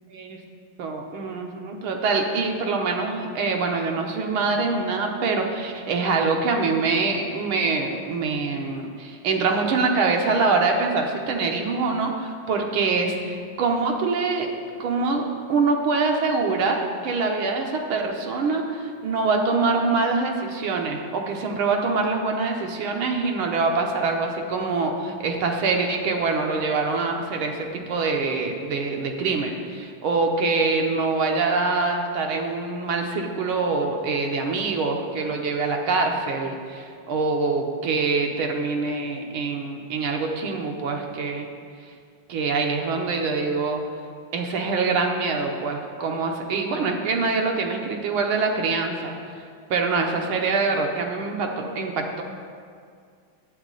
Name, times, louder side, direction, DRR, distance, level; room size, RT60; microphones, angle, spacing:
voice 1, 0.8-14.5 14.8-41.5 42.3-43.8 44.3-49.2 49.7-52.2, right 4 dB, 85° right, 2 dB, 1.7 m, -24 dB
9.4 x 8.1 x 3.9 m, 2.2 s
omnidirectional pair, 2.3 m